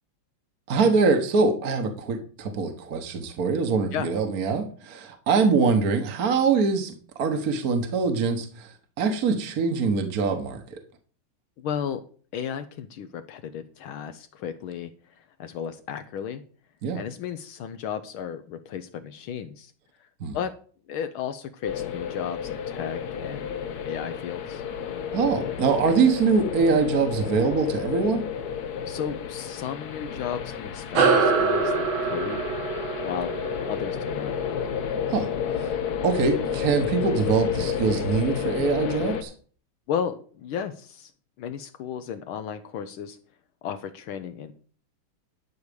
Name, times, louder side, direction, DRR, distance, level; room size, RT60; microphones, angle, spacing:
voice 1, 0.7-10.6 16.8-17.0 20.2-20.4 25.1-28.2 35.1-35.3 35.6-35.7 36.0-39.3, right 4 dB, 45° right, 5 dB, 1.5 m, -23 dB
voice 2, 11.6-12.0 12.3-16.4 16.9-19.7 20.0-20.1 20.3-20.5 20.9-23.5 23.8-24.7 28.9-32.5 33.0-33.3 33.7-34.3 39.9-41.1 41.4-43.2 43.6-44.5, left 8 dB, 75° left, 9 dB, 1.5 m, -34 dB
sound 1, 21.6-39.2, left 7 dB, 55° left, 1.2 m, -31 dB
sound 2, 30.9-35.8, right 4 dB, 65° right, 2.2 m, -25 dB
12.0 x 4.8 x 6.8 m, 0.43 s
omnidirectional pair, 2.4 m